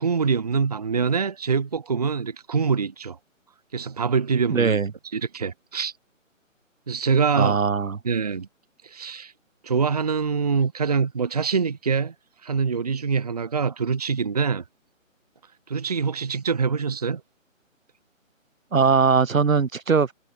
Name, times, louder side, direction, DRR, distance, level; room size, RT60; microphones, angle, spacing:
voice 1, 0.0-3.2 3.7-4.8 5.1-5.9 6.9-7.6 8.0-8.5 8.8-9.3 9.6-12.1 12.4-14.6 15.7-17.2, right 5 dB, 30° right, 1.2 m, -24 dB
voice 2, 4.5-4.9 7.4-8.0 18.7-20.1, right 5 dB, 80° right, 1.7 m, -20 dB
hypercardioid pair, 170°, 40 cm